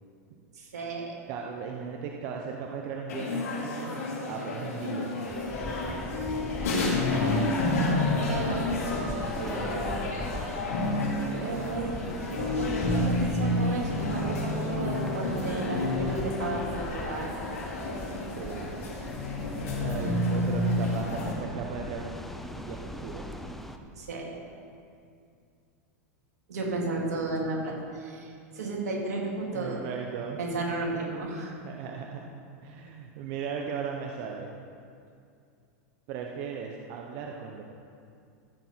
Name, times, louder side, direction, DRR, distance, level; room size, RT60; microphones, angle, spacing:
voice 1, 0.5-1.1 8.3-8.6 9.4-10.0 11.4-11.9 12.3-17.3 24.0-24.3 26.5-29.8 30.4-31.5, right 3 dB, 90° right, -1 dB, 2.9 m, -33 dB
voice 2, 1.3-4.0 4.3-5.2 6.4-7.0 8.1-8.5 9.0-10.6 11.3-11.7 18.3-19.0 19.8-22.2 22.5-23.3 29.5-30.4 31.6-32.3 32.6-34.5 36.1-37.6, right 6 dB, 50° right, 1 dB, 1.0 m, -37 dB
sound 1, 3.1-21.3, left 2 dB, 80° left, 3.1 m, -30 dB
sound 2, 5.3-23.8, left 1 dB, 5° left, 0.7 m, -40 dB
14.5 x 7.9 x 4.6 m, 2.4 s
hypercardioid pair, 120°, 8 cm